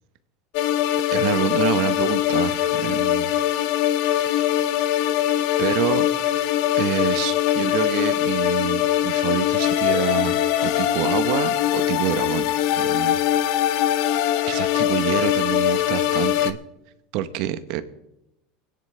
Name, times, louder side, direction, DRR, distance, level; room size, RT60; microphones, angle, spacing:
sound 1, 0.5-16.5, left 12 dB, 70° left, 0.7 m, -22 dB
voice 1, 1.1-3.3 4.2-4.4 5.6-6.1 6.7-12.5 12.8-13.2 14.5-16.6 17.1-17.8, right 12 dB, 65° right, 12 dB, 1.0 m, -27 dB
28.0 x 10.0 x 3.4 m, 0.89 s
supercardioid pair, 110°, 0 cm